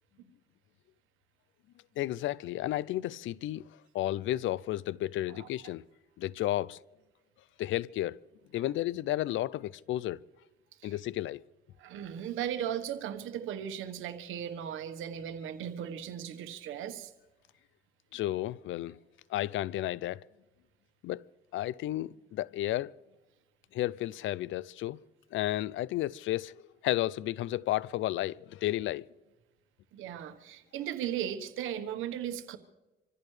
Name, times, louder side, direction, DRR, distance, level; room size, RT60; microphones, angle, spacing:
voice 1, 2.0-3.7 3.9-5.8 6.2-6.8 7.6-8.2 8.5-10.2 10.8-11.4 18.1-19.0 19.3-20.2 21.0-21.2 21.5-22.9 23.7-25.0 25.3-29.1, left 14 dB, 80° left, 0.5 m, -32 dB
voice 2, 11.8-17.1 29.9-32.6, right 10 dB, 90° right, 1.3 m, -37 dB
26.5 x 14.5 x 3.3 m
cardioid pair, 90°, 20 cm